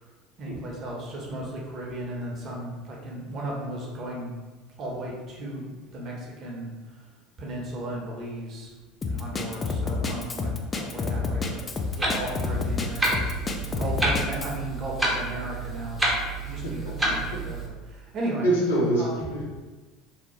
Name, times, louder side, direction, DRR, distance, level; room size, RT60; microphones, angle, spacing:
voice 1, 0.4-4.3 4.8-6.7 7.4-8.7 9.0-11.6 11.9-16.0 16.4-18.5 19.0-19.2, right 1 dB, 40° right, -3 dB, 0.8 m, -35 dB
Drum kit, 9.0-14.6, left 4 dB, 25° left, 0.3 m, -29 dB
Clock, 11.8-17.7, right 1 dB, 10° right, 0.7 m, -29 dB
voice 2, 16.4-17.1 18.4-19.4, right 1 dB, 75° left, -3 dB, 0.6 m, -26 dB
2.7 x 2.0 x 3.1 m, 1.2 s
figure-of-eight pair, 70°, 0 cm